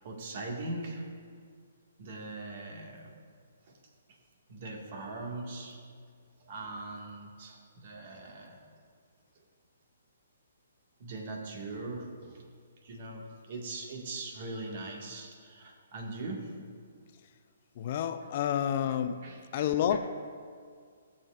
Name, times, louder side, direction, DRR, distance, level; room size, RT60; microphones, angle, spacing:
voice 1, 0.0-1.1 2.0-3.1 3.7-3.8 4.5-5.8 6.4-8.6 11.0-12.4 12.8-16.6 18.9-19.0 19.2-20.0, right 2 dB, 50° right, 0 dB, 1.8 m, -41 dB
voice 2, 17.8-19.2 19.5-20.0, left 9 dB, 45° left, 9 dB, 0.4 m, -29 dB
16.5 x 7.2 x 2.5 m, 2.1 s
hypercardioid pair, 140°, 0 cm